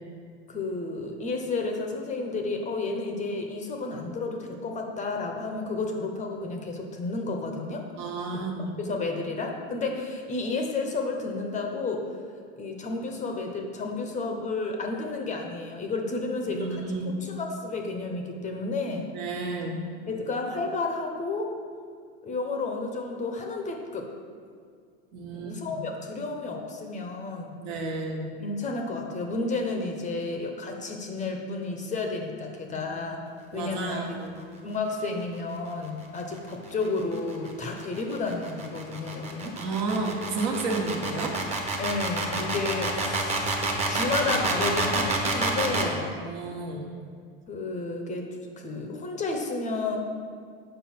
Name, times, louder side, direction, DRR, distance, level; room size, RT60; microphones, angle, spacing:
voice 1, 0.5-7.8 8.8-12.1 12.6-16.8 17.2-19.1 20.1-21.5 22.2-24.1 25.3-27.6 28.4-33.2 33.5-34.2 34.6-39.6 41.8-43.5 43.8-46.1 47.5-48.3 48.6-50.0, left 3 dB, 25° left, 3 dB, 0.7 m, -31 dB
voice 2, 8.0-8.7 16.4-17.1 19.1-19.8 25.1-25.8 27.6-28.2 32.7-32.9 33.5-34.4 39.6-41.4 46.1-46.9, right 3 dB, 60° right, 1 dB, 1.4 m, -32 dB
sound 1, 36.7-45.9, right 3 dB, 20° right, 1.0 m, -28 dB
7.4 x 5.3 x 4.3 m, 2.1 s
supercardioid pair, 130°, 32 cm